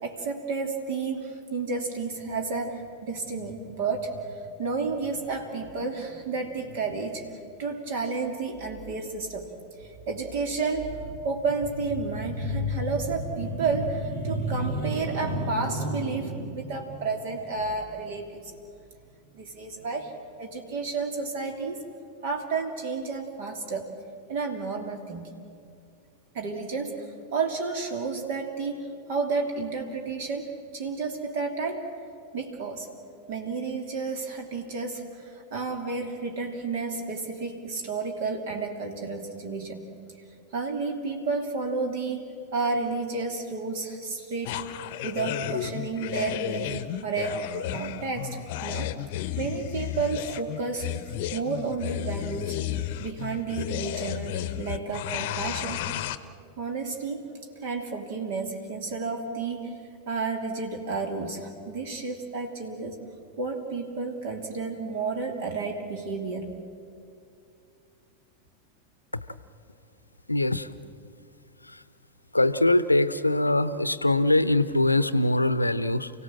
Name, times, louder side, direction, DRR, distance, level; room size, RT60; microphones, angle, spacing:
voice 1, 0.0-7.2 7.6-9.5 9.8-18.5 19.3-20.1 20.4-21.8 22.2-23.9 24.3-25.3 26.3-31.8 32.3-32.9 33.3-39.8 40.5-44.6 45.0-47.4 47.7-48.9 49.4-50.9 51.3-52.6 53.0-55.9 56.6-57.3 57.6-59.7 60.1-63.0 63.4-66.5, right 3 dB, 50° right, 4 dB, 3.0 m, -31 dB
sound 1, 44.4-56.2, left 12 dB, 50° left, 0.9 m, -33 dB
voice 2, 70.3-70.7 72.3-76.1, left 2 dB, 85° left, 15 dB, 0.8 m, -22 dB
30.0 x 17.0 x 7.6 m, 2.5 s
figure-of-eight pair, 90°, 0 cm